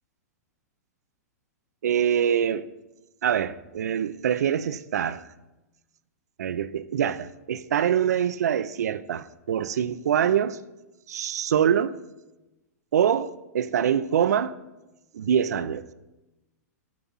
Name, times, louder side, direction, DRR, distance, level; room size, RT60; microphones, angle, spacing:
voice 1, 1.8-2.6 3.2-5.2 6.4-10.6 11.1-11.9 12.9-14.5 15.1-15.8, right 9 dB, 80° right, 0.5 m, -24 dB
11.5 x 6.0 x 5.5 m
hypercardioid pair, 125°, 9 cm